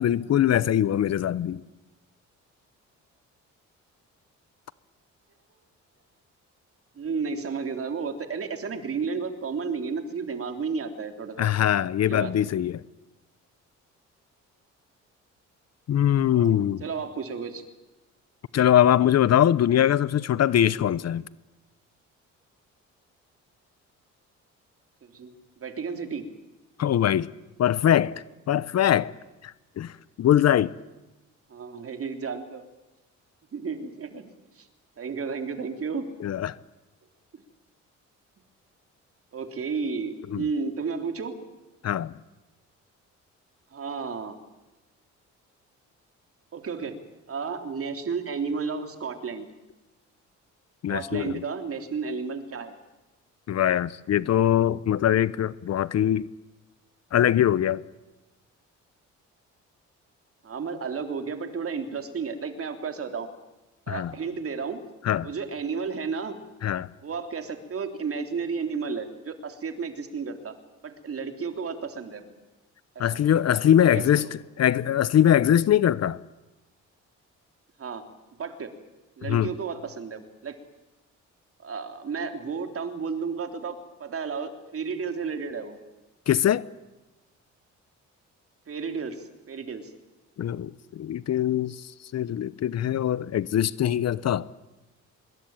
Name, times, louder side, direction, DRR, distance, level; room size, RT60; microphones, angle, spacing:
voice 1, 0.0-1.6 11.4-12.8 15.9-16.8 18.5-21.2 26.8-27.3 27.6-29.1 29.4-29.9 30.2-30.7 36.2-36.6 40.3-40.4 41.8-42.1 50.8-51.4 53.5-56.3 57.1-57.8 63.9-64.1 65.0-65.3 66.6-66.9 73.0-74.3 74.6-76.2 79.3-79.5 86.3-86.7 90.4-91.8 92.1-94.5, left 10 dB, 55° left, 0.9 m, -22 dB
voice 2, 7.0-11.5 12.0-12.5 16.2-17.6 25.0-25.3 25.6-26.3 31.5-32.6 33.5-34.3 34.6-34.7 35.0-36.0 37.3-37.4 39.3-41.3 43.7-44.4 46.5-47.0 47.3-49.5 50.9-52.8 60.4-63.3 63.9-64.8 65.2-66.4 67.0-70.6 70.8-72.4 73.0-73.2 73.8-74.3 77.8-78.0 78.4-78.7 79.2-80.6 81.6-85.8 88.7-89.9, right 5 dB, 50° right, 3.5 m, -32 dB
24.5 x 22.0 x 9.0 m
cardioid pair, 90°, 30 cm